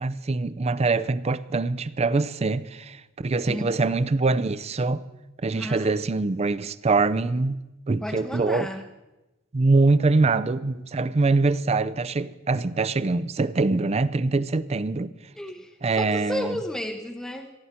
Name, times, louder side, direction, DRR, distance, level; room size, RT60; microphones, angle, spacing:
voice 1, 0.0-5.0 5.4-7.6 7.9-8.7 9.5-15.1 15.8-16.6, right 3 dB, 30° right, 0.5 m, -24 dB
voice 2, 3.5-3.9 5.6-5.9 8.0-8.8 15.4-17.5, left 1 dB, ahead, 0.7 m, -33 dB
19.0 x 13.5 x 4.3 m
head